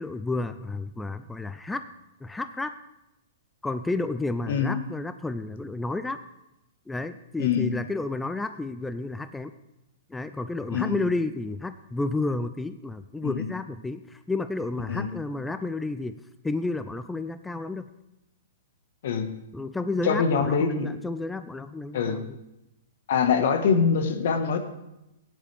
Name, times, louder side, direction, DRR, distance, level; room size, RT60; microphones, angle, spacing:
voice 1, 0.0-1.9 2.2-2.7 3.6-6.2 6.9-9.5 10.1-16.2 16.4-17.9 19.5-22.4, left 2 dB, 5° left, 11 dB, 0.4 m, -31 dB
voice 2, 7.4-7.7 10.7-11.0 13.2-13.5 14.9-15.1 19.0-19.3 20.0-20.9 21.9-22.2 23.1-24.6, left 6 dB, 65° left, 7 dB, 1.5 m, -24 dB
15.5 x 10.0 x 3.5 m, 0.90 s
hypercardioid pair, 125°, 0 cm